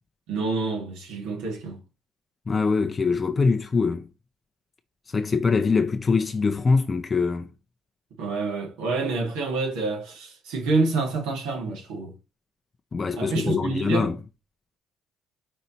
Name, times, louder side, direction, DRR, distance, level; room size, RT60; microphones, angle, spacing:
voice 1, 0.3-1.8 8.2-12.2 13.2-14.1, right 3 dB, 85° right, 2.8 m, -27 dB
voice 2, 2.5-4.0 5.1-7.5 12.9-14.2, left 4 dB, 30° left, 0.5 m, -23 dB
5.4 x 4.1 x 4.4 m
cardioid pair, 90°, 0 cm